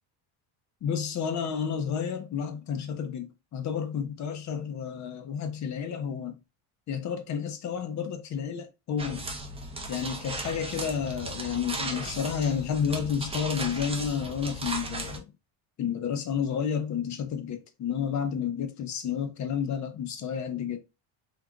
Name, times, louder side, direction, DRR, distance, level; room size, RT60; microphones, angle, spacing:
voice 1, 0.8-6.4 6.9-9.3 9.9-15.3 15.8-20.8, left 7 dB, 35° left, 0.6 m, -31 dB
sound 1, 9.0-15.2, right 2 dB, 15° right, 0.4 m, -36 dB
3.7 x 2.8 x 2.3 m
cardioid pair, 160°, 50 cm